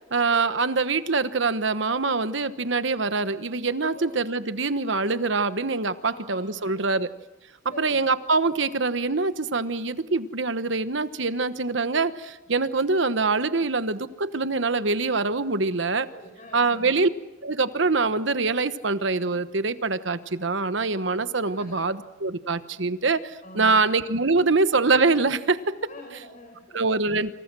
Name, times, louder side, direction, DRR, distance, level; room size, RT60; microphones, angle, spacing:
voice 1, 0.1-7.1 7.8-16.1 16.5-17.1 17.4-25.7 26.7-27.3, right 3 dB, 65° right, 12 dB, 1.2 m, -24 dB
voice 2, 6.0-7.0 7.7-8.1 12.5-12.6 16.1-16.9 21.5-21.7 23.4-23.8 25.9-27.0, equal, 40° left, 1 dB, 5.1 m, -45 dB
27.5 x 27.0 x 6.2 m, 1.0 s
head